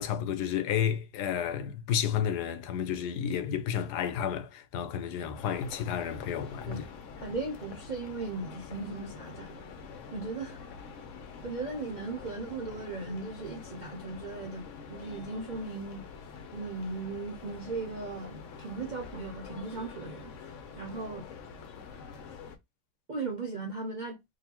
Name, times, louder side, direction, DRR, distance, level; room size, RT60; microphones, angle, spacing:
voice 1, 0.0-6.8, left 9 dB, 75° left, 1.2 m, -31 dB
sound 1, 5.3-22.6, left 5 dB, 60° left, 0.9 m, -46 dB
voice 2, 7.2-9.6 10.1-10.6 11.4-16.0 16.5-21.2 23.1-24.2, right 3 dB, 75° right, 0.4 m, -37 dB
3.8 x 2.7 x 2.9 m
omnidirectional pair, 1.8 m